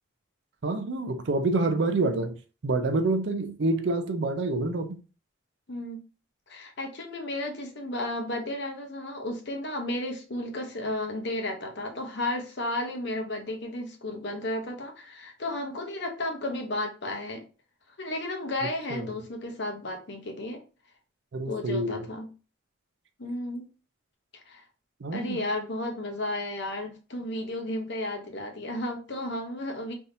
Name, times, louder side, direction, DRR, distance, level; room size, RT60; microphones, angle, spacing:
voice 1, 0.6-2.4 2.6-5.0 18.9-19.1 21.3-22.1 25.0-25.4, right 2 dB, 60° right, 0.4 m, -27 dB
voice 2, 5.7-6.0 6.5-17.4 18.0-20.6 21.5-22.3 23.2-23.7 24.3-24.6 25.1-29.9, left 1 dB, 55° left, 0.8 m, -33 dB
3.4 x 2.7 x 2.6 m
head